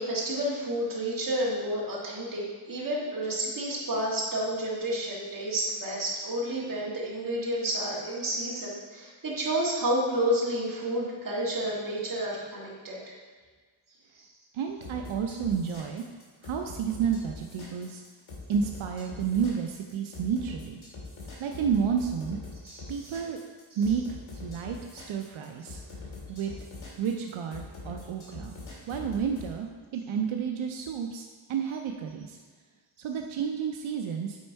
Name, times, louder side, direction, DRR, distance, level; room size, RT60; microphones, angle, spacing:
voice 1, 0.0-13.1 22.6-23.2, right 1 dB, 45° right, -5 dB, 1.9 m, -30 dB
voice 2, 14.5-16.0 16.4-18.0 18.5-20.8 21.4-22.4 22.9-23.4 23.8-25.8 26.3-26.5 27.0-28.6 28.9-32.4 33.0-34.4, right 7 dB, 85° right, 3 dB, 0.6 m, -31 dB
sound 1, 14.8-29.5, left 3 dB, 90° left, 2.3 m, -43 dB
8.5 x 4.4 x 4.5 m, 1.5 s
wide cardioid pair, 155°, 47 cm